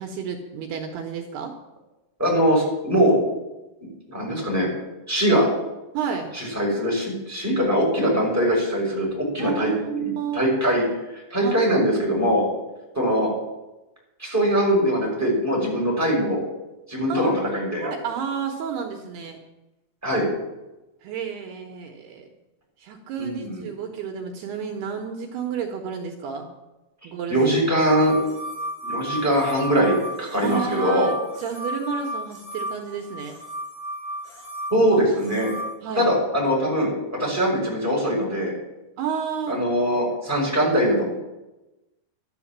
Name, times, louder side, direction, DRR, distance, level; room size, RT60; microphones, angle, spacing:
voice 1, 0.0-1.5 5.9-6.3 9.4-10.4 11.4-11.7 17.1-17.5 17.8-19.4 21.0-22.3 22.8-26.5 27.0-27.4 30.4-33.4 35.8-36.1 39.0-39.6, right 7 dB, 75° right, 3 dB, 3.1 m, -31 dB
voice 2, 2.2-3.1 4.1-4.7 5.1-5.5 6.3-9.7 10.0-11.0 11.3-12.4 12.9-13.3 14.2-16.4 16.9-17.9 20.0-20.3 23.2-23.7 27.3-28.1 28.8-31.1 34.7-35.5 36.0-38.5 39.5-41.1, equal, 5° right, -4 dB, 5.6 m, -22 dB
sound 1, 27.8-35.7, equal, 40° left, 5.3 m, -33 dB
12.5 x 11.5 x 7.4 m, 1.0 s
omnidirectional pair, 4.9 m